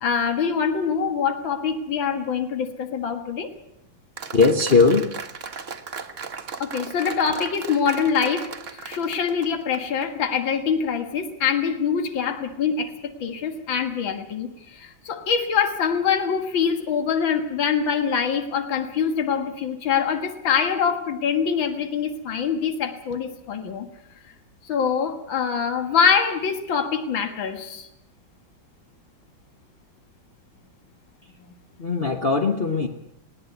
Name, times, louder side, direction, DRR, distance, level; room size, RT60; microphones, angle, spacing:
voice 1, 0.0-3.5 6.6-23.9 24.7-27.9, left 6 dB, 75° left, 7 dB, 2.5 m, -24 dB
Applause, 4.2-10.1, right 5 dB, 40° right, 1.5 m, -36 dB
voice 2, 4.3-5.0 31.8-32.9, left 4 dB, 35° left, 4 dB, 1.2 m, -19 dB
20.5 x 17.5 x 8.0 m, 0.81 s
omnidirectional pair, 2.1 m